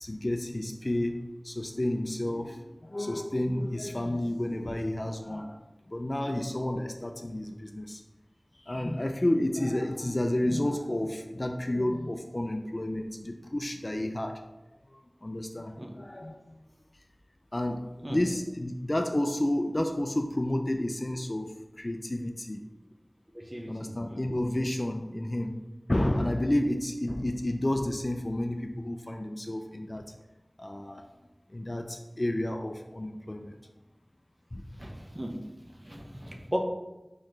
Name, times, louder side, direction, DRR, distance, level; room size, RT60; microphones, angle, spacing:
voice 1, 0.0-5.6 5.9-8.0 8.7-14.4 15.2-16.4 17.5-22.6 23.7-25.6 25.9-30.1 30.6-31.0 31.5-33.5 34.5-34.6 35.9-36.2, left 1 dB, 40° left, 4 dB, 0.3 m, -31 dB
voice 2, 23.3-24.2 34.7-35.4 35.7-36.6, equal, 25° right, 1 dB, 0.7 m, -37 dB
4.3 x 3.0 x 3.8 m, 1.0 s
wide cardioid pair, 45°, 0 cm